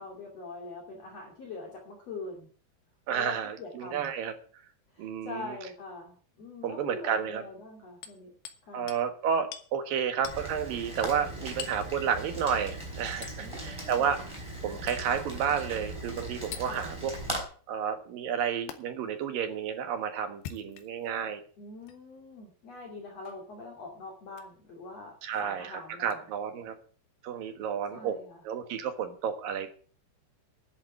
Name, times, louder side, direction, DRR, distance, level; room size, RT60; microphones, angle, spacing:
voice 1, 0.0-2.5 3.1-4.1 4.9-8.3 8.6-8.9 13.4-14.1 16.7-16.9 21.6-25.1 25.4-26.2 27.9-28.4, left 3 dB, 45° left, 0 dB, 3.6 m, -43 dB
voice 2, 3.1-4.3 5.0-5.6 6.6-7.4 8.7-14.2 14.6-17.1 17.7-21.4 25.2-26.7 27.2-28.2 28.4-29.7, right 7 dB, 65° right, 7 dB, 3.0 m, -31 dB
Hammer, 8.0-8.6 8.9-9.1 9.5-9.7 10.2-10.4 11.6-11.9 13.2-13.4 14.9-15.1 16.5-16.7 18.7-18.8 20.3-21.1 21.8-22.0 23.2-23.4 24.3-24.5 26.1-26.2, left 9 dB, 75° left, 3.2 m, -43 dB
Rain, 10.2-17.4, right 1 dB, 5° right, 4.5 m, -39 dB
11.0 x 8.0 x 8.3 m, 0.43 s
omnidirectional pair, 4.6 m